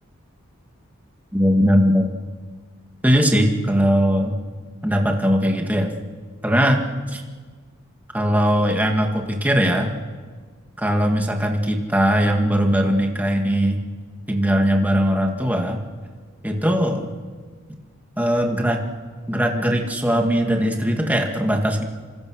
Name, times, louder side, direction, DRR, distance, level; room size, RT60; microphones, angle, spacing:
voice 1, 1.3-2.1 3.0-4.4 4.8-5.9 6.4-6.8 7.1-7.2 8.1-9.9 10.8-13.8 14.3-15.8 16.4-17.1 18.2-18.8 19.3-21.8, equal, 5° right, 2 dB, 2.1 m, -20 dB
27.5 x 25.0 x 6.4 m, 1.5 s
head